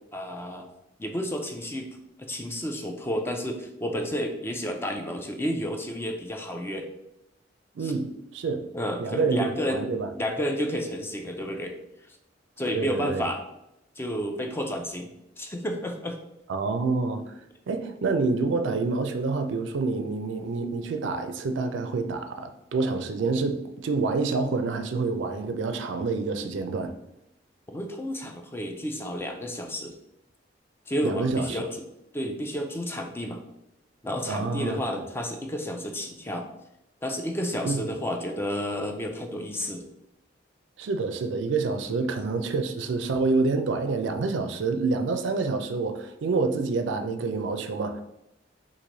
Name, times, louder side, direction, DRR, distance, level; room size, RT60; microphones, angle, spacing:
voice 1, 0.1-0.7 1.0-6.9 7.8-7.9 8.7-9.8 10.2-11.8 12.6-13.4 14.0-15.1 15.4-16.2 27.7-29.9 30.9-31.8 32.1-33.4 34.0-36.5 37.0-39.8 41.9-42.0, equal, 15° left, 4 dB, 0.4 m, -31 dB
voice 2, 7.8-8.1 8.3-8.6 9.0-10.1 12.7-13.3 16.5-17.3 17.7-26.9 31.0-31.7 34.3-35.0 37.6-37.8 40.8-48.0, right 3 dB, 75° right, 7 dB, 0.4 m, -27 dB
3.1 x 2.5 x 3.8 m, 0.86 s
head